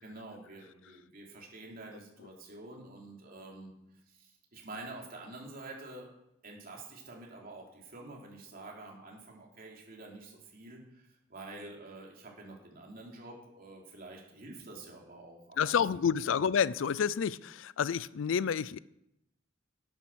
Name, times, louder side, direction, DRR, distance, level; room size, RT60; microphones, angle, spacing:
voice 1, 0.0-3.7 4.1-6.1 6.4-16.4, right 2 dB, 50° right, 3.2 m, -48 dB
voice 2, 15.6-18.8, left 7 dB, 90° left, 0.4 m, -29 dB
10.5 x 9.1 x 6.3 m
head